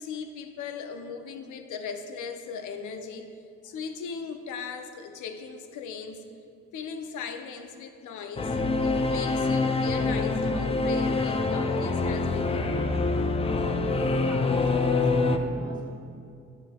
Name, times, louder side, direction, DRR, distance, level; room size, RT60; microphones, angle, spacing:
voice 1, 0.0-3.3 3.6-6.2 6.7-12.7, left 6 dB, 80° left, 7 dB, 0.6 m, -38 dB
Singing / Musical instrument, 8.4-15.4, left 3 dB, 20° left, 0.3 m, -25 dB
voice 2, 14.2-15.9, right 1 dB, 15° right, -2 dB, 1.3 m, -43 dB
7.5 x 6.7 x 2.3 m, 2.4 s
cardioid pair, 90°, 30 cm